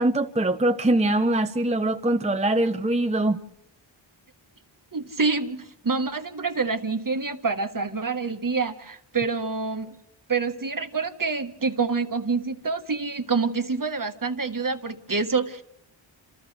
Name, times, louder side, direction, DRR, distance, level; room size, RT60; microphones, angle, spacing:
voice 1, 0.0-3.4, right 1 dB, 15° right, 0.8 m, -23 dB
voice 2, 4.9-9.9 10.3-15.6, right 4 dB, 45° right, 1.4 m, -27 dB
29.0 x 27.5 x 3.3 m
wide cardioid pair, 60°, 47 cm